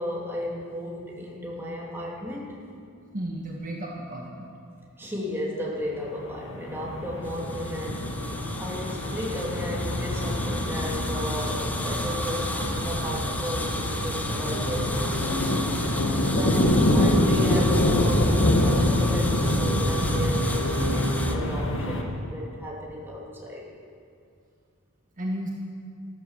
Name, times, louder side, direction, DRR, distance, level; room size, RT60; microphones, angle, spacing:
voice 1, 0.0-2.6 5.0-15.4 15.7-23.6, left 1 dB, 10° right, -4 dB, 2.7 m, -34 dB
voice 2, 3.1-4.5 25.2-25.5, right 1 dB, 40° right, -1 dB, 1.5 m, -33 dB
sound 1, 6.1-22.0, left 1 dB, 60° left, 1.8 m, -25 dB
sound 2, 7.2-21.3, left 1 dB, 5° left, 0.9 m, -35 dB
14.0 x 13.0 x 7.2 m, 2.4 s
head